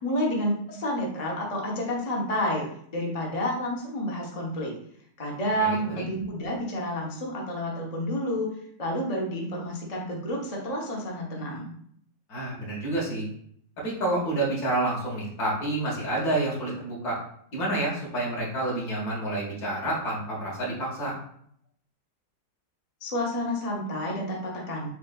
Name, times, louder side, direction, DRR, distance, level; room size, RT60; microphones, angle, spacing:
voice 1, 0.0-2.7 2.9-4.7 5.2-8.5 8.8-11.7 23.0-24.9, equal, 40° left, -2 dB, 0.5 m, -29 dB
voice 2, 5.6-5.9 12.3-13.3 13.8-17.2 17.5-21.1, right 2 dB, 60° left, -4 dB, 1.8 m, -29 dB
7.0 x 2.4 x 2.3 m, 0.65 s
omnidirectional pair, 1.9 m